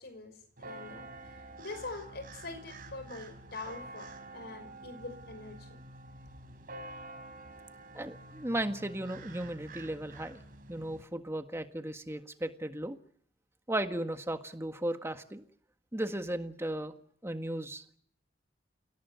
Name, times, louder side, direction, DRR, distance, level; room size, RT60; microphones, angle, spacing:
voice 1, 0.0-5.8 6.4-6.5, left 3 dB, 60° left, 10 dB, 5.8 m, -44 dB
sound 1, 0.6-11.0, right 2 dB, 50° right, 4.3 m, -48 dB
voice 2, 7.9-10.4 10.7-13.0 13.7-15.4 15.9-16.9 17.2-17.8, right 1 dB, 15° right, 7 dB, 1.7 m, -35 dB
29.5 x 18.0 x 9.5 m, 0.63 s
head